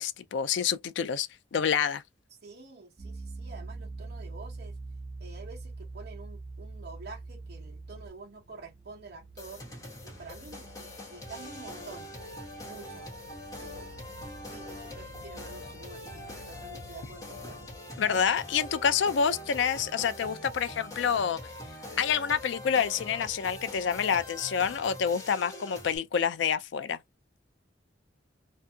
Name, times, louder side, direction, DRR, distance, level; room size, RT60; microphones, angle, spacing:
voice 1, 0.0-2.0 18.0-21.4 22.0-27.0, left 7 dB, 65° left, 0.4 m, -28 dB
voice 2, 2.4-4.7 5.2-9.6 10.0-12.1 12.6-13.1 13.6-14.2 14.5-17.6, right 4 dB, 55° right, 0.9 m, -48 dB
Piano, 3.0-8.1, right 3 dB, 20° right, 0.6 m, -42 dB
sound 1, 4.8-17.8, right 2 dB, 90° right, 1.1 m, -53 dB
sound 2, 9.4-26.0, left 1 dB, 20° left, 1.2 m, -43 dB
2.7 x 2.6 x 2.3 m
head